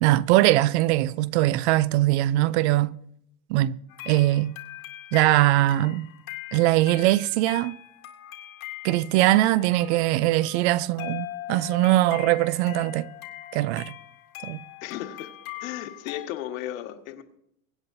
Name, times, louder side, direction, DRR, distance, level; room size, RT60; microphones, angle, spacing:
voice 1, 0.0-2.9 3.5-3.8 4.1-4.5 5.1-6.1 6.5-7.8 8.8-13.1 13.5-13.9 14.4-14.6, right 16 dB, 55° right, 0.5 m, -21 dB
sound 1, 3.9-16.3, left 15 dB, 90° left, 2.2 m, -41 dB
voice 2, 14.8-15.3 15.6-17.2, left 12 dB, 70° left, 1.7 m, -35 dB
24.0 x 8.9 x 2.7 m
supercardioid pair, 145°, 41 cm